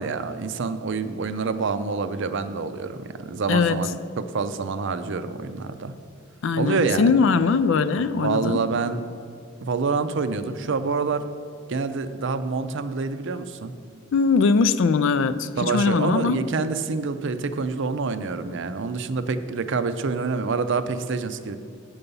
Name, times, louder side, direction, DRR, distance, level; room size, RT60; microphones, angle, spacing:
voice 1, 0.0-5.9 6.6-7.1 8.2-9.1 9.6-11.3 11.7-13.7 15.6-21.5, right 4 dB, 60° right, 11 dB, 0.5 m, -27 dB
voice 2, 6.4-8.6 14.1-16.4, left 5 dB, 60° left, 13 dB, 0.4 m, -21 dB
8.8 x 6.9 x 5.4 m, 2.3 s
head